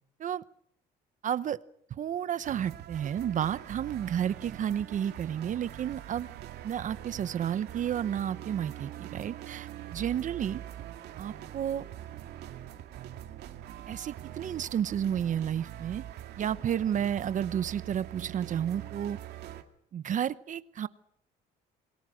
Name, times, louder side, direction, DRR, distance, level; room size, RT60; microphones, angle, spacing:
voice 1, 1.2-1.6 1.9-6.3 6.6-10.6 11.2-11.8 13.9-16.0 16.4-19.2 19.9-20.9, right 9 dB, 50° right, 15 dB, 0.9 m, -31 dB
sound 1, 2.4-19.6, right 12 dB, 75° right, 2.4 m, -43 dB
28.0 x 22.0 x 6.4 m, 0.65 s
cardioid pair, 110°, 17 cm